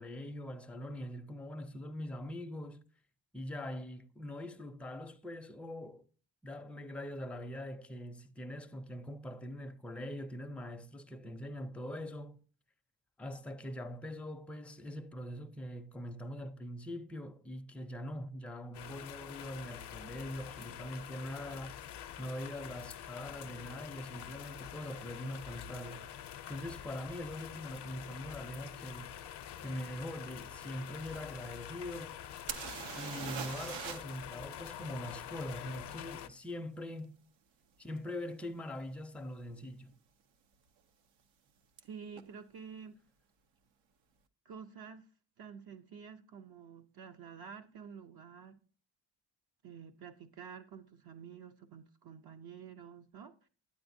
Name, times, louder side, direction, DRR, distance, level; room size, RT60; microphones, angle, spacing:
voice 1, 0.0-2.9 3.3-6.1 6.4-12.4 13.2-21.8 22.2-26.1 26.5-29.1 29.6-32.2 32.9-37.2 37.8-39.9, left 1 dB, 5° left, 0.5 m, -43 dB
sound 1, 18.7-36.3, left 10 dB, 60° left, 0.6 m, -46 dB
sound 2, 32.5-34.2 34.5-34.6 38.0-38.1 38.7-38.9 39.1-39.7 41.8-41.9 42.1-42.2, right 7 dB, 85° right, 0.8 m, -41 dB
voice 2, 41.8-43.0 44.5-45.1 45.4-48.6 49.6-53.4, right 7 dB, 55° right, 0.6 m, -49 dB
9.3 x 8.7 x 2.6 m
cardioid pair, 85°, 45 cm